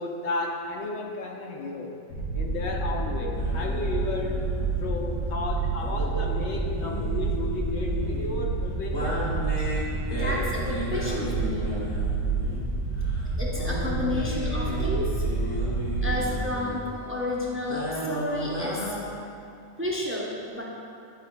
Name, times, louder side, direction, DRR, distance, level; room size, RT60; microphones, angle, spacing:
voice 1, 0.0-2.0 2.3-4.5 4.8-9.2, left 2 dB, 65° left, 1 dB, 0.9 m, -33 dB
sound 1, 2.1-16.4, right 3 dB, 90° left, 1.3 m, -29 dB
sound 2, 3.3-19.1, equal, 35° left, 1.4 m, -35 dB
voice 2, 10.1-11.7 13.4-15.6 16.0-19.0 19.8-20.6, left 1 dB, 15° right, -4 dB, 0.5 m, -31 dB
9.9 x 5.3 x 2.2 m, 2.7 s
omnidirectional pair, 1.3 m